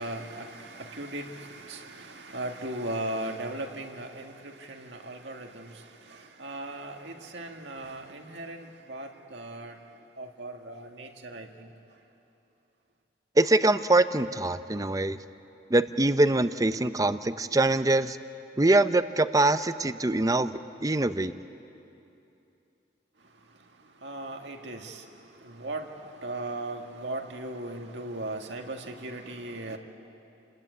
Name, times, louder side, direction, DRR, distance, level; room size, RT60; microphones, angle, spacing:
voice 1, 0.0-9.8 10.2-11.7 24.0-25.1 25.4-29.8, right 1 dB, 80° right, 3 dB, 2.1 m, -38 dB
voice 2, 13.4-15.2 15.7-18.2 18.6-21.3, right 2 dB, 20° right, 12 dB, 0.7 m, -23 dB
29.0 x 19.5 x 9.4 m, 2.8 s
head